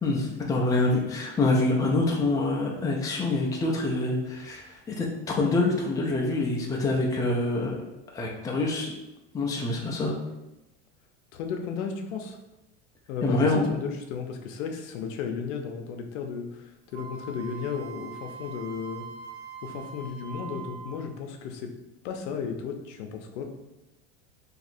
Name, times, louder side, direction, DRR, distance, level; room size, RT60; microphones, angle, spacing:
voice 1, 0.0-7.7 8.1-8.9 9.3-10.1 13.2-13.7, left 2 dB, 10° left, -1 dB, 0.4 m, -26 dB
voice 2, 11.3-12.4 13.1-16.6 16.9-19.0 19.6-21.7 22.0-23.5, left 6 dB, 80° left, 4 dB, 0.7 m, -34 dB
Wind instrument woodwind instrument, 16.9-21.1, right 6 dB, 80° right, 0.8 m, -42 dB
2.8 x 2.5 x 4.2 m, 0.96 s
supercardioid pair, 135°, 36 cm